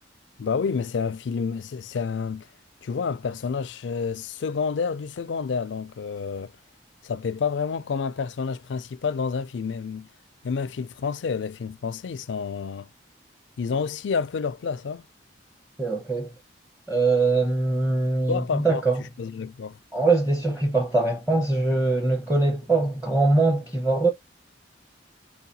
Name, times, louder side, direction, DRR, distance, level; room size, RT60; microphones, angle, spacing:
voice 1, 0.4-2.5 2.8-6.5 7.0-10.1 10.4-12.9 13.6-15.0 18.3-18.8 19.2-19.8, left 5 dB, 75° left, 0.4 m, -29 dB
voice 2, 15.8-16.3 16.9-19.0 19.9-24.1, right 3 dB, 10° right, 0.7 m, -22 dB
4.8 x 2.2 x 2.7 m
head